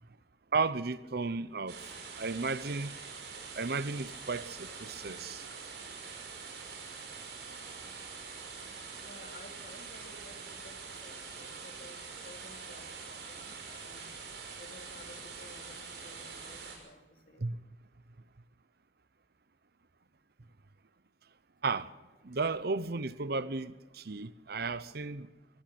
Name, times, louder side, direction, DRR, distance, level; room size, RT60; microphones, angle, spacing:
voice 1, 0.5-1.8 2.2-3.0 3.6-5.4 17.4-17.6 21.6-21.9 22.2-25.3, right 4 dB, 60° right, 0.8 m, -34 dB
sound 1, 1.7-16.7, right 5 dB, 80° right, 6.4 m, -45 dB
voice 2, 9.0-14.1 14.6-17.5, left 2 dB, 55° left, 2.9 m, -54 dB
23.5 x 19.5 x 6.0 m
head